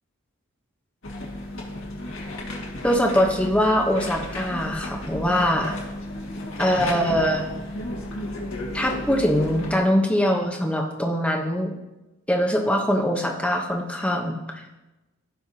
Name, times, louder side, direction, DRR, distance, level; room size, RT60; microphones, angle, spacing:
sound 1, 1.0-9.8, left 1 dB, 70° left, 1.9 m, -33 dB
voice 1, 2.8-5.8 6.6-7.5 8.7-11.7 12.3-14.6, equal, 5° left, 0 dB, 0.9 m, -22 dB
16.5 x 5.7 x 2.9 m, 1.0 s
head